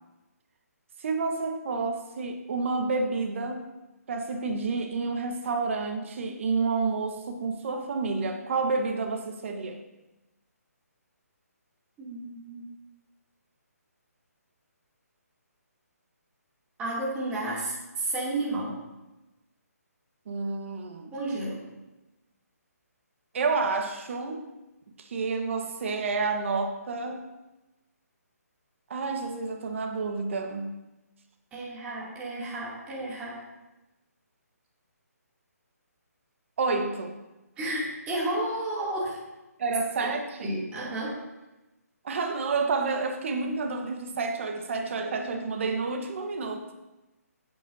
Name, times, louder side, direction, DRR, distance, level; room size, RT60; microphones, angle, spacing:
voice 1, 1.0-3.7 4.1-9.8 20.3-21.1 23.3-24.5 25.0-27.2 28.9-30.8 36.6-37.2 39.6-40.5 42.0-46.7, right 4 dB, 50° right, 5 dB, 1.4 m, -29 dB
voice 2, 12.0-12.7 16.8-18.8 21.1-21.6 31.5-33.5 37.6-39.2 40.4-41.2, right 1 dB, 15° right, -7 dB, 2.8 m, -32 dB
15.5 x 8.2 x 2.8 m, 1.0 s
hypercardioid pair, 155°, 9 cm